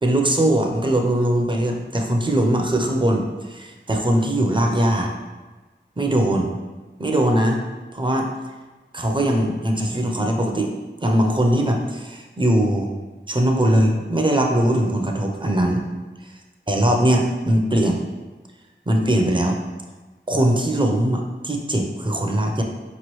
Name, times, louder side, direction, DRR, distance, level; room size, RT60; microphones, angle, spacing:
voice 1, 0.0-5.1 6.0-6.5 7.0-7.6 7.9-8.3 8.9-10.7 11.0-12.9 13.3-15.8 16.7-18.0 18.9-19.6 20.3-22.6, right 1 dB, 25° right, 2 dB, 0.6 m, -20 dB
4.7 x 3.0 x 3.1 m, 1.3 s
wide cardioid pair, 50°, 20 cm